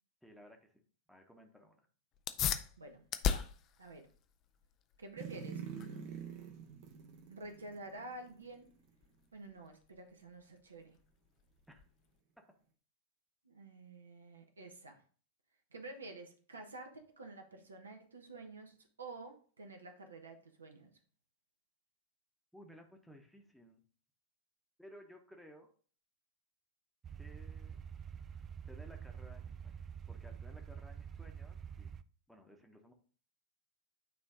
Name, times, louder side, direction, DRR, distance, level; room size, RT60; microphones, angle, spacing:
voice 1, 0.2-0.8 1.1-1.9 11.7-11.8 12.4-12.5 22.5-23.8 24.8-25.7 27.1-27.8 28.6-31.9 32.3-32.9, equal, ahead, 2 dB, 1.0 m, -58 dB
sound 1, 2.1-12.2, left 9 dB, 35° left, 0.5 m, -41 dB
voice 2, 2.8-3.5 3.8-4.1 5.0-5.6 7.3-8.7 9.3-11.0 13.4-15.0 15.7-20.9, right 2 dB, 75° right, 4 dB, 1.1 m, -50 dB
sound 2, 5.2-8.5 8.9-9.0, right 7 dB, 45° right, 0.9 m, -46 dB
sound 3, 27.0-32.0, right 7 dB, 25° right, 0.3 m, -47 dB
9.2 x 3.1 x 3.8 m, 0.43 s
figure-of-eight pair, 90°, 0 cm